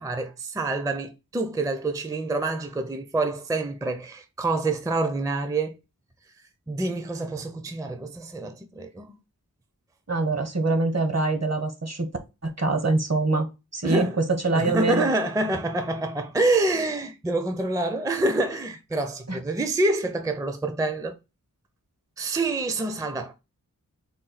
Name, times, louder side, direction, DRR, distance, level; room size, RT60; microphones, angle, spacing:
voice 1, 0.0-5.7 6.7-9.1 13.8-14.2 14.5-21.1 22.2-23.3, right 2 dB, 10° right, 0.4 m, -27 dB
voice 2, 10.1-12.1 12.4-13.5 13.7-15.1 19.3-19.4, right 3 dB, 50° right, 0.9 m, -24 dB
4.0 x 2.3 x 3.9 m
wide cardioid pair, 45°, 34 cm